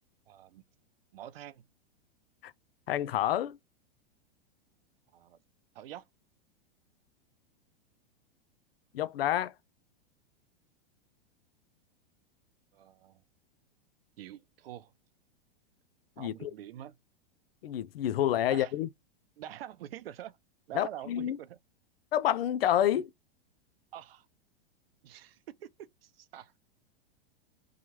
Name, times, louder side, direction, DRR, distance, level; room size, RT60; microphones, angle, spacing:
voice 1, 0.3-0.6 1.1-1.6 5.1-5.4 5.7-6.0 12.7-13.2 14.2-14.9 16.2-16.9 18.5-18.7 19.4-20.4 20.7-21.6 22.9-23.0 23.9-24.3 25.0-26.5, right 12 dB, 75° right, 0.5 m, -45 dB
voice 2, 2.9-3.6 8.9-9.5 16.2-16.5 17.6-18.9 20.7-21.4 22.1-23.1, left 11 dB, 75° left, 0.5 m, -28 dB
2.9 x 2.3 x 2.7 m
hypercardioid pair, 110°, 29 cm